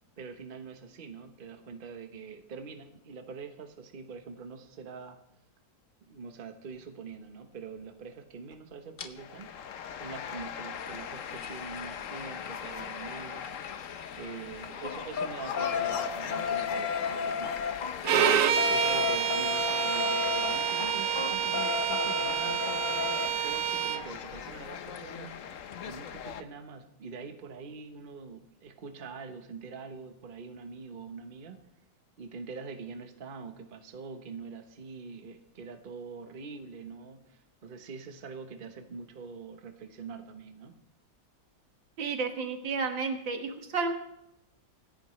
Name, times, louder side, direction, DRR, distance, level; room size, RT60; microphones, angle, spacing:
voice 1, 0.2-5.2 6.0-9.5 10.0-13.8 14.2-17.6 18.1-22.6 23.4-25.3 25.8-31.6 32.2-40.7, right 5 dB, 35° right, 6 dB, 1.1 m, -44 dB
sound 1, 9.0-9.1 10.7-14.2 14.5-23.3 24.9-25.0 25.3-25.4 25.7-25.8, left 7 dB, 90° left, 0.4 m, -34 dB
sound 2, 9.2-26.4, left 8 dB, 60° left, 0.9 m, -40 dB
Bowed string instrument, 18.0-24.0, right 9 dB, 65° right, 1.1 m, -28 dB
voice 2, 42.0-43.9, right 4 dB, 85° right, 4 dB, 2.2 m, -31 dB
25.5 x 10.5 x 3.2 m, 0.87 s
omnidirectional pair, 2.0 m